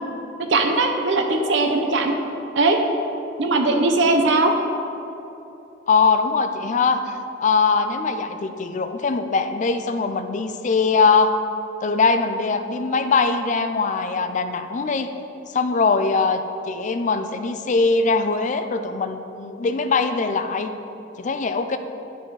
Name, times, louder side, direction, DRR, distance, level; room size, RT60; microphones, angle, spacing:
voice 1, 0.5-2.1 2.6-2.8 3.4-4.5, right 3 dB, 65° right, 4 dB, 0.7 m, -19 dB
voice 2, 5.9-7.0 7.4-11.4 11.8-15.1 15.5-20.8 21.2-21.8, left 4 dB, 40° left, 8 dB, 0.4 m, -21 dB
11.0 x 4.3 x 4.7 m, 3.0 s
head